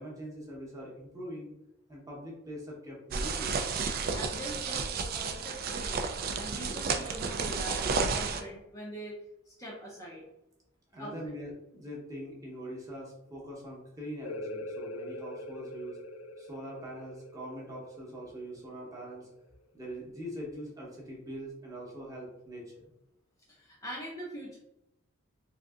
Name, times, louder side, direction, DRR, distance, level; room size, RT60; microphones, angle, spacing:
voice 1, 0.0-1.5 1.9-3.7 10.9-16.0 16.4-19.3 19.7-22.9, equal, 15° right, -4 dB, 0.8 m, -42 dB
sound 1, 3.1-8.4, right 4 dB, 45° right, 0.3 m, -32 dB
voice 2, 4.1-6.1 6.4-9.1 9.5-10.3 11.0-11.1 23.5-24.6, equal, 15° left, -5 dB, 0.5 m, -43 dB
sound 2, 14.2-19.6, left 1 dB, 80° left, 0.3 m, -43 dB
3.7 x 2.6 x 2.3 m, 0.90 s
head